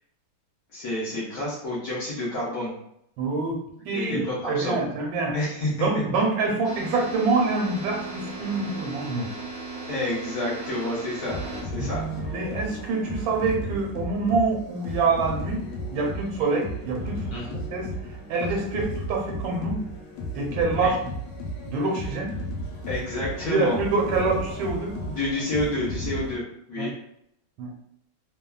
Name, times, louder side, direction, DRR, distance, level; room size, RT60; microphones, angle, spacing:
voice 1, 0.7-2.7 3.9-4.8 5.3-5.9 9.9-12.0 17.3-17.6 20.8-20.9 22.9-23.8 25.1-26.4 26.7-26.9, left 1 dB, 60° left, -7 dB, 1.1 m, -29 dB
voice 2, 3.2-5.4 5.8-9.3 11.8-15.6 15.9-17.9 18.3-19.8 20.3-21.0 21.7-22.3 23.5-24.9 26.8-26.9 27.6-27.7, right 3 dB, 80° right, -1 dB, 1.4 m, -26 dB
sound 1, 6.6-11.6, right 3 dB, 40° right, 0.8 m, -37 dB
sound 2, 11.3-26.4, equal, 80° left, 1.4 m, -34 dB
3.1 x 2.2 x 2.2 m, 0.75 s
omnidirectional pair, 2.2 m